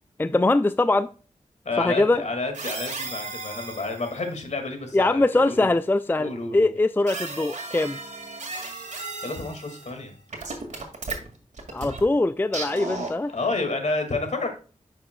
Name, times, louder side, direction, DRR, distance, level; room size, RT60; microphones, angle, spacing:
voice 1, 0.2-1.1 1.8-2.2 4.9-8.0 11.7-13.4, left 2 dB, 15° left, 0.3 m, -22 dB
voice 2, 1.7-5.7 6.2-6.7 9.2-10.1 13.3-14.5, left 3 dB, 65° left, 1.9 m, -30 dB
sound 1, 2.5-4.2 7.1-10.0 10.3-12.0 12.5-13.3, right 3 dB, 70° right, 1.9 m, -35 dB
9.5 x 6.2 x 2.2 m
cardioid pair, 60°, 13 cm